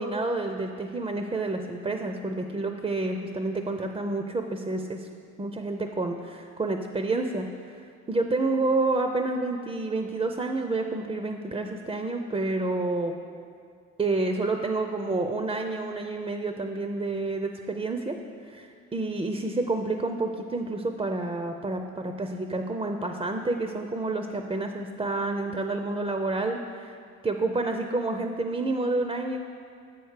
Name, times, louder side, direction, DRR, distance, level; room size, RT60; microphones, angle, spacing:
voice 1, 0.0-5.1 5.4-7.8 8.1-13.1 14.0-18.2 18.4-26.9 27.2-29.4, right 2 dB, 15° right, 5 dB, 0.4 m, -29 dB
7.7 x 4.6 x 6.4 m, 2.2 s
cardioid pair, 90°, 30 cm